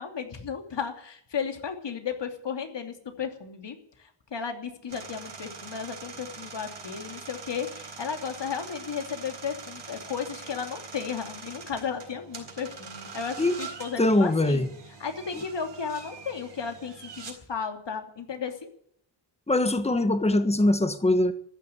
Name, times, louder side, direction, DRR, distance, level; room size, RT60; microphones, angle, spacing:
voice 1, 0.0-14.7 15.0-18.5, left 6 dB, 80° left, 5 dB, 2.8 m, -34 dB
sound 1, 4.9-17.3, right 5 dB, 75° right, 4.4 m, -43 dB
voice 2, 14.0-14.7 19.5-21.3, left 1 dB, 15° left, 10 dB, 1.4 m, -22 dB
14.0 x 10.5 x 10.0 m, 0.65 s
wide cardioid pair, 110°, 42 cm